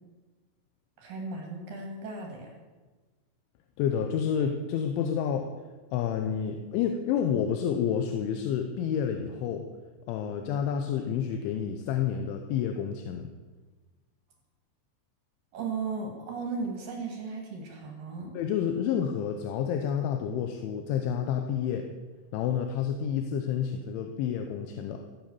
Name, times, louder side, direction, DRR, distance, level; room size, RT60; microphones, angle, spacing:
voice 1, 1.0-2.5 15.5-18.3, right 4 dB, 55° right, 1 dB, 3.0 m, -36 dB
voice 2, 3.8-5.5 5.9-9.7 10.1-13.3 18.3-21.9 22.3-25.1, left 8 dB, 80° left, 5 dB, 3.2 m, -29 dB
15.5 x 8.1 x 7.0 m, 1.3 s
omnidirectional pair, 5.6 m